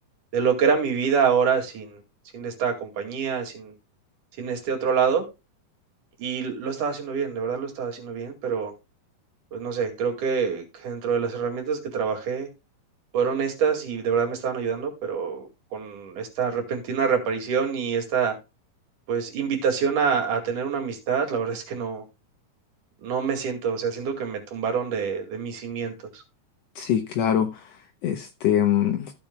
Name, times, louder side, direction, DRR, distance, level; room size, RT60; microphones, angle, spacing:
voice 1, 0.3-2.0 2.3-3.7 4.4-5.3 6.2-8.7 9.5-12.5 13.1-18.4 19.1-22.0 23.0-26.2, right 6 dB, 65° right, 3.6 m, -26 dB
voice 2, 26.7-29.1, left 10 dB, 75° left, 1.5 m, -24 dB
14.5 x 7.5 x 2.2 m
omnidirectional pair, 3.9 m